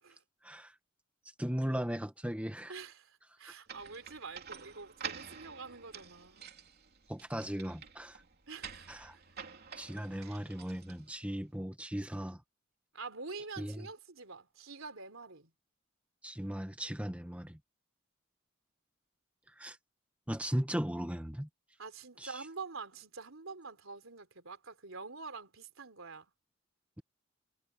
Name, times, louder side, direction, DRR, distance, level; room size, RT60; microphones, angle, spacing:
voice 1, 1.4-2.7 3.5-3.6 7.1-8.2 8.9-9.2 9.8-12.4 13.6-13.9 16.2-17.6 19.6-19.8 20.3-21.5 22.2-22.4, equal, 5° right, 1.6 m, -37 dB
voice 2, 2.7-6.5 8.5-9.0 10.1-10.5 12.9-15.5 21.8-26.3, right 4 dB, 75° right, 3.7 m, -46 dB
sound 1, 3.7-11.3, right 7 dB, 50° right, 3.1 m, -49 dB
head